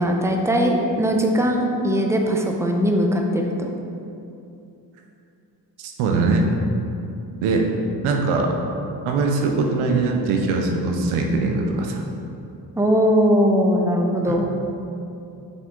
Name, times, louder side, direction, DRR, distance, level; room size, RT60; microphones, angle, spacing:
voice 1, 0.0-3.7 12.8-14.5, equal, 5° right, 1 dB, 0.9 m, -20 dB
voice 2, 5.8-6.5 7.4-7.7 8.0-8.5 9.1-12.0 14.3-14.4, right 3 dB, 80° right, 2 dB, 0.8 m, -21 dB
6.0 x 5.7 x 3.8 m, 2.7 s
hypercardioid pair, 45°, 48 cm